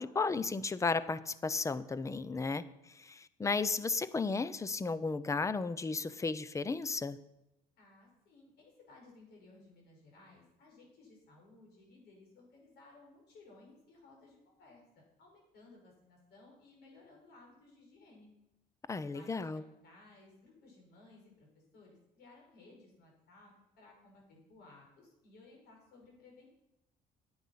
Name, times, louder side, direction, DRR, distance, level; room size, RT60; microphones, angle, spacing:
voice 1, 0.0-7.2 18.9-19.6, left 4 dB, 20° left, 16 dB, 0.6 m, -34 dB
voice 2, 7.8-18.3 19.0-19.5 19.8-26.5, left 2 dB, 75° left, 0 dB, 5.3 m, -59 dB
10.0 x 8.7 x 5.8 m, 0.87 s
cardioid pair, 110°, 17 cm